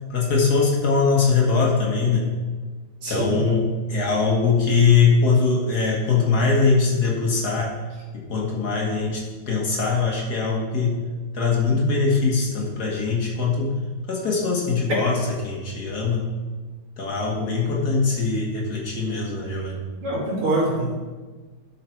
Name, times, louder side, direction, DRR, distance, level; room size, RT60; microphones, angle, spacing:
voice 1, 0.1-2.4 3.1-7.8 8.1-9.2 9.5-11.1 11.3-13.8 14.1-16.3 17.0-19.8, left 4 dB, 50° left, -2 dB, 1.9 m, -21 dB
voice 2, 3.0-3.4 20.0-20.9, right 1 dB, 75° right, -4 dB, 3.4 m, -24 dB
11.5 x 5.8 x 4.5 m, 1.3 s
omnidirectional pair, 2.4 m